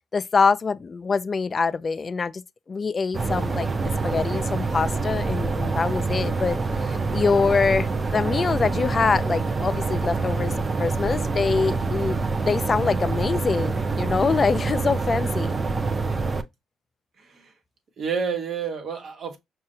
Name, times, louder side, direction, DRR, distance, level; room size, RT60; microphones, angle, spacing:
voice 1, 0.1-2.4 2.7-10.5 10.8-12.2 12.4-15.5, left 5 dB, 35° left, 0.4 m, -24 dB
sound 1, 3.1-16.4, right 4 dB, 30° right, 0.6 m, -26 dB
voice 2, 17.2-17.5 18.0-19.4, right 6 dB, 55° right, 1.2 m, -29 dB
5.5 x 2.4 x 2.7 m
cardioid pair, 90°, 0 cm